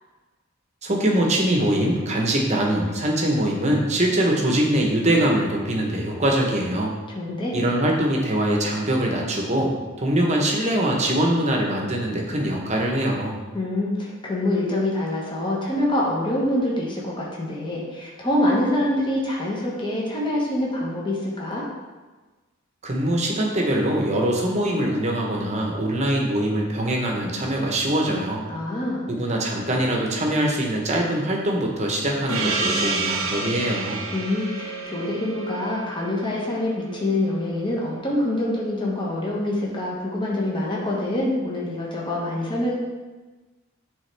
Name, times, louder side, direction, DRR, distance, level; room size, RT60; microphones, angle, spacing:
voice 1, 0.8-6.9 7.5-9.7 10.0-13.4 22.8-28.4 29.1-34.0, right 1 dB, 30° right, 0 dB, 0.9 m, -23 dB
voice 2, 7.1-7.6 13.5-21.6 28.5-29.1 34.1-42.7, left 1 dB, 20° left, -4 dB, 1.0 m, -25 dB
Gong, 32.3-37.3, right 3 dB, 70° right, 0.7 m, -29 dB
8.0 x 3.5 x 3.3 m, 1.3 s
head